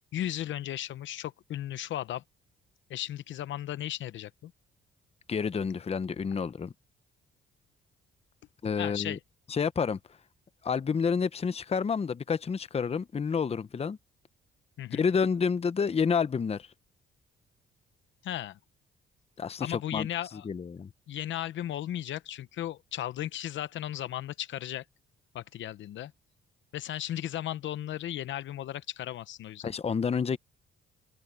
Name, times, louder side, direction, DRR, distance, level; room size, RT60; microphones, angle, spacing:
voice 1, 0.1-2.2 2.9-4.5 8.8-9.2 14.8-15.1 18.2-18.6 19.6-20.4 21.1-24.8 25.3-26.1 26.7-29.7, left 12 dB, 75° left, 0.9 m, -35 dB
voice 2, 5.3-6.7 8.6-9.2 9.5-10.0 10.6-14.0 14.9-16.7 19.4-20.1 20.4-20.9 29.6-30.4, left 6 dB, 30° left, 0.8 m, -29 dB
open air
cardioid pair, 90°, 20 cm